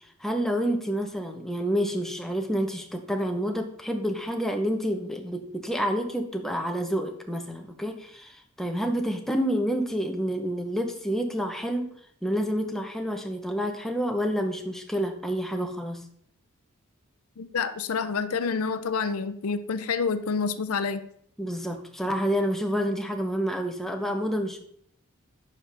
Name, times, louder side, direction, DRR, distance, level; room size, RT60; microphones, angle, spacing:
voice 1, 0.2-11.9 12.2-16.1 21.4-24.6, equal, ahead, 3 dB, 0.8 m, -28 dB
voice 2, 17.4-21.0, left 5 dB, 75° left, 12 dB, 0.5 m, -28 dB
9.8 x 5.7 x 3.4 m, 0.65 s
head